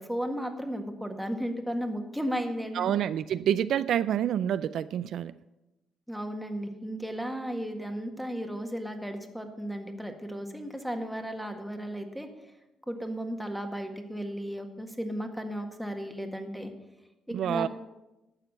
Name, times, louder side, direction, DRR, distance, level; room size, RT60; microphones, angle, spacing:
voice 1, 0.0-2.9 6.1-12.3 12.9-16.7 17.3-17.7, equal, 5° right, 4 dB, 1.7 m, -34 dB
voice 2, 2.7-5.3 17.3-17.7, right 10 dB, 70° right, 14 dB, 0.3 m, -27 dB
11.5 x 6.8 x 7.6 m, 0.99 s
cardioid pair, 90°, 0 cm